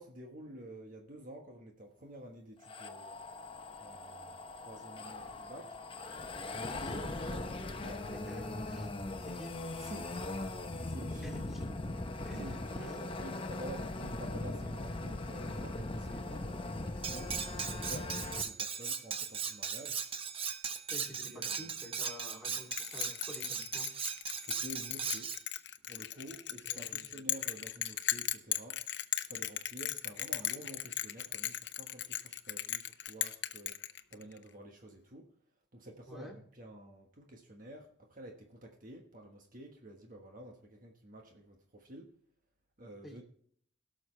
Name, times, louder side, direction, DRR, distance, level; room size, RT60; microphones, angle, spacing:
voice 1, 0.0-3.2 3.8-4.4 4.6-5.7 6.4-6.8 7.3-8.1 9.7-11.4 12.3-17.3 17.6-20.0 21.2-21.5 24.3-25.3 25.9-28.8 29.2-33.7 34.1-35.3 35.7-42.1 42.8-43.2, right 1 dB, 45° right, 1.3 m, -50 dB
sound 1, 2.6-18.4, left 2 dB, 30° left, 0.8 m, -40 dB
voice 2, 6.7-7.0 7.9-8.9 9.3-9.6 11.2-11.6 12.2-13.0 20.9-23.9 26.7-27.1 36.1-36.3 43.0-43.2, equal, ahead, 2.8 m, -49 dB
Cutlery silverware, 17.0-25.4, right 6 dB, 30° right, 0.9 m, -38 dB
Bell, 22.7-34.4, left 12 dB, 60° left, 0.7 m, -37 dB
17.5 x 6.5 x 3.3 m
head